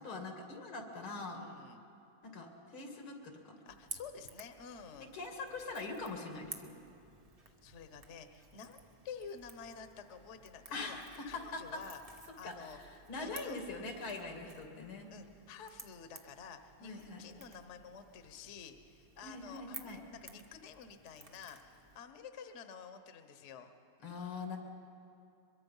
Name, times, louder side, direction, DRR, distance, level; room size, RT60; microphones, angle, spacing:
voice 1, 0.0-1.4 2.2-3.6 5.1-6.7 10.7-11.8 12.4-15.1 16.8-17.2 19.2-20.0 24.0-24.6, left 3 dB, 90° left, 3 dB, 3.0 m, -43 dB
voice 2, 1.3-1.8 3.6-5.1 7.4-11.0 11.3-12.0 12.4-12.8 13.2-13.6 15.1-23.7, left 6 dB, 45° left, 8 dB, 1.1 m, -50 dB
Crackle / Crack, 3.7-22.0, right 3 dB, 35° right, 0.6 m, -55 dB
23.0 x 22.5 x 5.5 m, 2.7 s
omnidirectional pair, 2.2 m